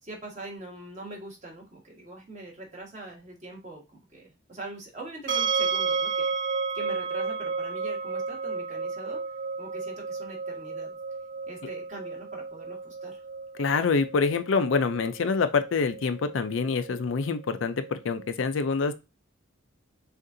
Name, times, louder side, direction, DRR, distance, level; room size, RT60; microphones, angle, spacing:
voice 1, 0.0-6.3 6.7-9.2 9.6-11.0 11.5-13.2, right 2 dB, 35° right, -2 dB, 1.6 m, -43 dB
sound 1, 5.3-18.3, right 5 dB, 60° right, 1.0 m, -33 dB
voice 2, 13.6-18.9, left 4 dB, 70° left, 10 dB, 0.5 m, -26 dB
6.4 x 2.6 x 2.6 m, 0.26 s
head